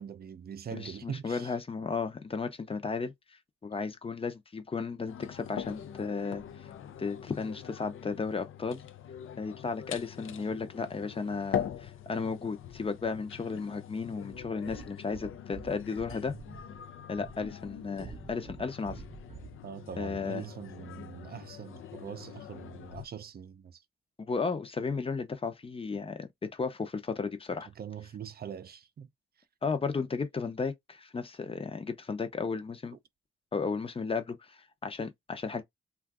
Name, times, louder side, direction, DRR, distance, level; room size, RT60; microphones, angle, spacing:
voice 1, 0.0-1.5 19.6-23.8 27.8-29.1, right 8 dB, 50° right, 0.5 m, -42 dB
voice 2, 0.7-3.1 3.6-6.4 7.0-8.8 9.4-16.3 17.1-19.0 20.0-20.4 24.2-27.7 29.6-33.0 33.5-35.6, left 4 dB, 25° left, 0.6 m, -34 dB
sound 1, 5.1-23.1, left 9 dB, 75° left, 0.5 m, -43 dB
sound 2, 14.3-19.7, right 5 dB, 30° right, 0.8 m, -48 dB
2.5 x 2.4 x 3.5 m
cardioid pair, 95°, 21 cm